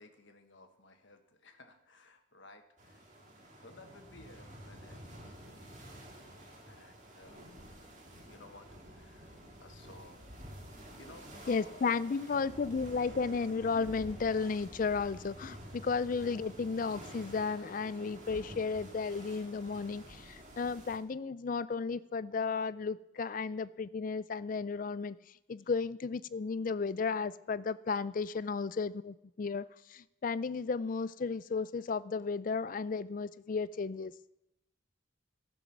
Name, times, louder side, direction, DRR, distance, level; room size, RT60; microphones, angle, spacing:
voice 1, 0.0-5.6 6.7-7.5 8.2-10.2 11.0-12.6 25.6-25.7 28.3-28.4, left 2 dB, 65° left, 6 dB, 1.3 m, -57 dB
sound 1, 2.8-21.0, equal, 35° right, 2.0 m, -50 dB
voice 2, 11.5-34.1, left 4 dB, 40° left, 17 dB, 0.3 m, -34 dB
15.5 x 6.2 x 7.1 m, 0.90 s
head